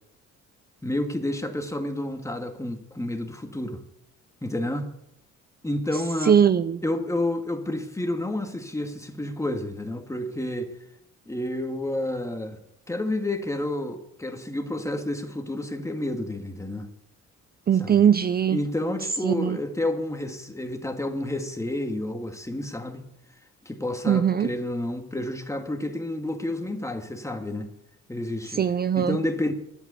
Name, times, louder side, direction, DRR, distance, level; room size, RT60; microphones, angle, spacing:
voice 1, 0.8-3.8 4.4-4.9 5.6-6.4 6.8-10.7 11.3-12.6 12.9-16.9 17.8-18.0 18.5-23.1 23.7-27.7 28.1-28.6 28.9-29.5, left 1 dB, 10° left, 1.8 m, -30 dB
voice 2, 5.9-6.8 17.7-18.6 19.2-19.6 24.1-24.5 28.5-29.2, right 8 dB, 30° right, 0.5 m, -21 dB
11.0 x 8.3 x 8.0 m
cardioid pair, 90°, 30 cm